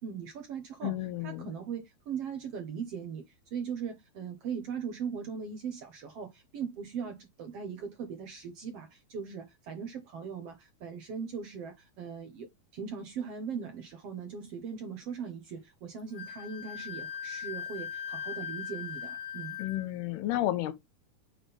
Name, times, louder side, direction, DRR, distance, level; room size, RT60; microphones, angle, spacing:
voice 1, 0.0-0.9 1.2-19.6, right 6 dB, 75° right, 1.4 m, -39 dB
voice 2, 0.8-1.5 19.6-20.7, left 14 dB, 90° left, 3.0 m, -31 dB
Wind instrument woodwind instrument, 16.1-19.9, left 8 dB, 65° left, 2.5 m, -39 dB
7.5 x 4.3 x 3.4 m
omnidirectional pair, 4.4 m